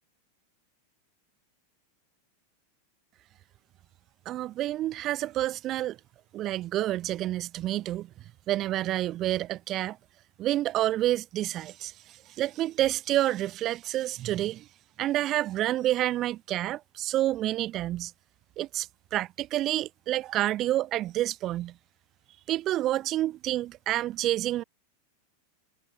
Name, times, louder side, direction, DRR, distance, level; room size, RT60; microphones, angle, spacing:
voice 1, 4.3-6.0 6.3-8.1 8.5-10.0 10.4-11.9 12.4-14.7 15.0-18.1 18.6-21.7 22.5-24.6, right 14 dB, 35° right, 0.6 m, -28 dB
figure-of-eight pair, 90°, 0 cm